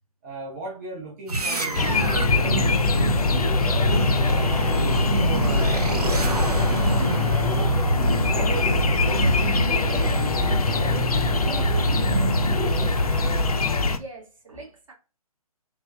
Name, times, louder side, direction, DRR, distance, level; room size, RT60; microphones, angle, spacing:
voice 1, 0.2-4.6 5.1-7.4 8.2-10.8, right 3 dB, 25° right, 0.7 m, -38 dB
sound 1, 1.3-13.9, right 1 dB, 80° right, 0.7 m, -26 dB
sound 2, 1.7-14.0, left 3 dB, 70° left, 0.5 m, -23 dB
voice 2, 13.9-14.9, right 1 dB, 55° right, 1.3 m, -43 dB
3.4 x 3.1 x 2.2 m
figure-of-eight pair, 135°, 19 cm